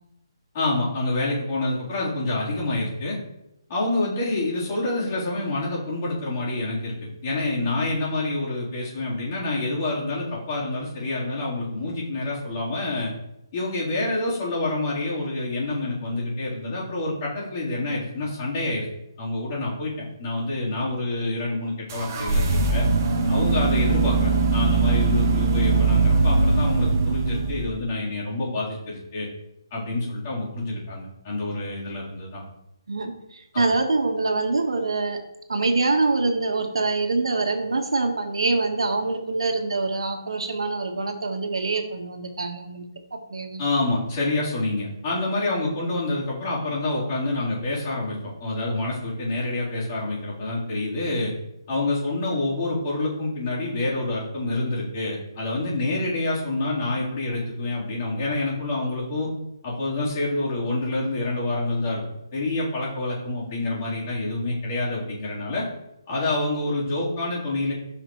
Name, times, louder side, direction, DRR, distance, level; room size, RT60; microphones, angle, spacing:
voice 1, 0.5-3.2 3.7-7.0 7.2-13.1 13.5-18.9 19.2-22.9 23.3-29.3 29.7-32.4 33.5-33.6 43.6-51.3 51.7-59.3 59.6-62.0 62.3-65.7 66.1-67.7, left 2 dB, 30° left, -7 dB, 3.9 m, -27 dB
sound 1, 21.9-27.8, right 3 dB, 30° right, 1.2 m, -21 dB
voice 2, 32.9-35.2 35.5-43.7, right 3 dB, 85° right, 4 dB, 1.5 m, -25 dB
15.0 x 5.8 x 3.2 m, 0.85 s
hypercardioid pair, 170°, 3 cm